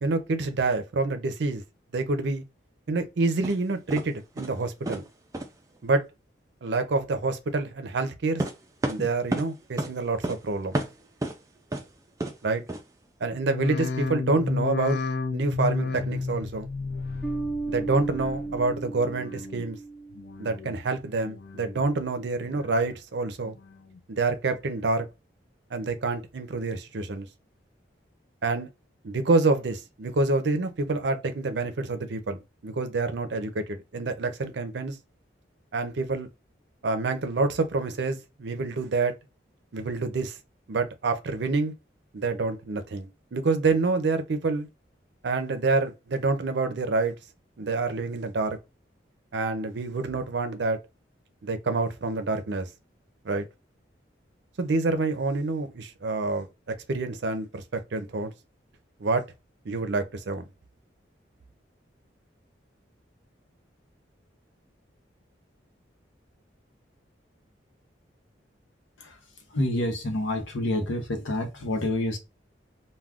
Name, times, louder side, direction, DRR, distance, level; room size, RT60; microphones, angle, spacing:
voice 1, 0.0-1.6 1.9-2.4 2.9-5.0 5.8-6.0 6.6-8.4 8.9-10.8 12.4-12.6 13.2-15.0 15.3-16.7 17.7-19.8 20.4-23.6 24.1-25.1 25.7-27.3 28.4-28.7 29.0-35.0 35.7-36.3 36.8-39.1 39.7-40.4 40.7-41.7 42.1-44.7 45.2-47.1 47.6-48.6 49.3-50.8 51.4-52.7 53.2-53.5 54.6-58.3 59.0-59.3 59.7-60.5, right 3 dB, 70° right, 0.5 m, -27 dB
sound 1, 3.4-3.6 3.9-4.1 4.4-4.6 4.9-5.1 5.3-5.5 8.4-9.5 9.8-9.9 10.2-10.4 10.7-11.4 11.7-11.8 12.2-12.4 12.7-12.8, right 1 dB, 15° right, 0.3 m, -30 dB
sound 2, 13.4-18.7 19.0-19.6 20.1-20.8 21.2-21.9 22.3-23.0 23.4-24.0 24.5-24.6, left 4 dB, 60° left, 0.4 m, -33 dB
Bass guitar, 17.2-20.7, right 3 dB, 5° left, 0.7 m, -35 dB
voice 2, 69.5-72.2, left 1 dB, 90° left, 0.7 m, -28 dB
2.3 x 2.2 x 3.4 m
head